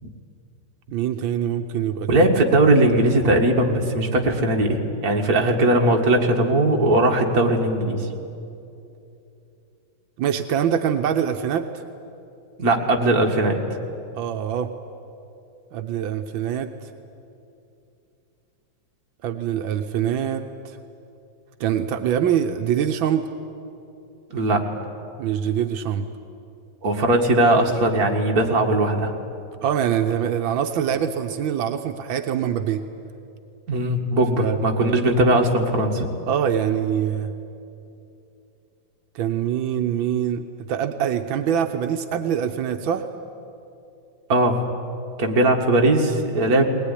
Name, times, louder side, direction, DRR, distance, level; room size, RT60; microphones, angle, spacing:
voice 1, 0.9-2.1 10.2-11.7 14.1-14.7 15.7-16.9 19.2-20.8 21.6-23.2 25.2-26.1 29.6-32.8 34.4-34.6 36.3-37.3 39.1-43.1, right 9 dB, 85° right, 7 dB, 1.6 m, -24 dB
voice 2, 2.1-8.0 12.6-13.6 24.3-24.6 26.8-29.1 33.7-36.1 44.3-44.6 45.2-46.6, right 1 dB, 50° right, 2 dB, 2.4 m, -19 dB
20.5 x 19.5 x 10.0 m, 2.7 s
omnidirectional pair, 2.1 m